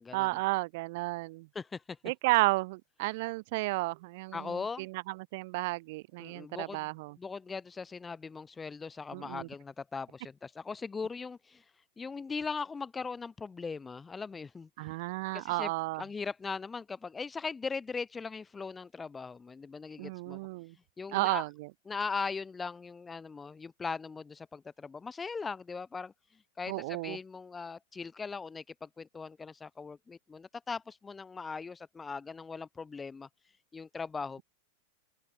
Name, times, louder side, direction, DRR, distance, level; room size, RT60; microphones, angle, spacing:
voice 1, 0.1-1.5 2.0-7.2 9.1-9.5 14.8-16.0 20.0-20.7 21.1-21.7 26.7-27.2, right 23 dB, 50° right, 0.4 m, -32 dB
voice 2, 1.5-2.0 4.3-4.9 6.2-6.8 7.2-15.0 15.3-15.7 16.0-20.4 21.0-21.4 21.9-33.3 33.7-34.4, left 4 dB, 15° left, 0.4 m, -39 dB
open air
figure-of-eight pair, 90°, 0 cm